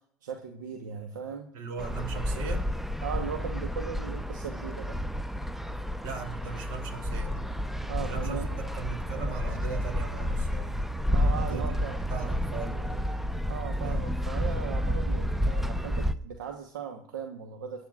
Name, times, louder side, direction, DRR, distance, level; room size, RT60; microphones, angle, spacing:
voice 1, 0.2-1.5 1.9-2.0 3.0-5.0 7.9-8.7 11.1-12.0 13.5-17.8, right 7 dB, 85° right, 4 dB, 1.0 m, -38 dB
voice 2, 1.5-2.7 5.7-7.4 8.1-10.8 11.3-13.2 13.8-14.1, right 5 dB, 60° right, 4 dB, 2.9 m, -39 dB
sound 1, 1.8-16.1, equal, 5° right, 0.6 m, -30 dB
20.0 x 10.5 x 2.4 m, 0.65 s
hypercardioid pair, 80°, 10 cm